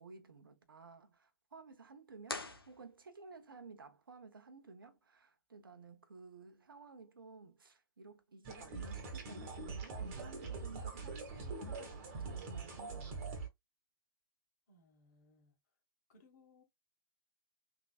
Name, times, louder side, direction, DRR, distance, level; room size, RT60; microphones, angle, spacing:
voice 1, 0.0-13.4, right 4 dB, 70° right, 1.0 m, -55 dB
sound 1, 2.2-3.4, left 2 dB, 85° left, 1.0 m, -45 dB
sound 2, 8.4-13.5, right 4 dB, 35° right, 1.3 m, -43 dB
voice 2, 14.7-15.5 16.1-16.6, left 2 dB, 45° left, 1.8 m, -66 dB
3.7 x 2.9 x 2.4 m
figure-of-eight pair, 120°, 12 cm